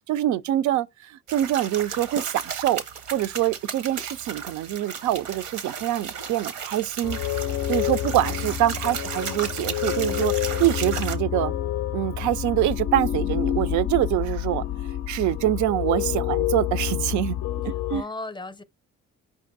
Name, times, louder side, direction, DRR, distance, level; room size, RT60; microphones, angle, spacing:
voice 1, 0.1-2.8 3.1-7.2 7.7-11.5 11.9-14.6 15.1-17.4 17.6-18.0, right 13 dB, 75° right, 0.4 m, -25 dB
sound 1, 1.3-11.2, right 6 dB, 90° right, 0.9 m, -35 dB
sound 2, 7.0-18.0, left 12 dB, 65° left, 0.4 m, -28 dB
voice 2, 8.0-8.8 17.7-18.6, left 2 dB, 15° left, 0.6 m, -38 dB
5.1 x 2.6 x 3.9 m
supercardioid pair, 70°, 30 cm